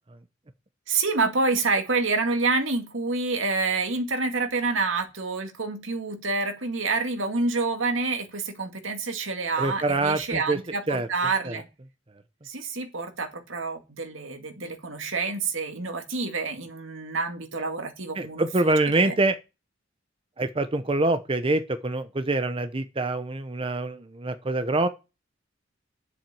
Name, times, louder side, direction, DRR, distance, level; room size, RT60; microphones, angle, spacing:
voice 1, 0.9-11.7 12.4-19.1, right 3 dB, 80° right, 2.2 m, -28 dB
voice 2, 9.6-10.6 10.9-11.1 11.4-11.6 18.2-19.4 20.4-24.9, right 2 dB, 25° right, 0.7 m, -25 dB
10.5 x 7.4 x 7.6 m
head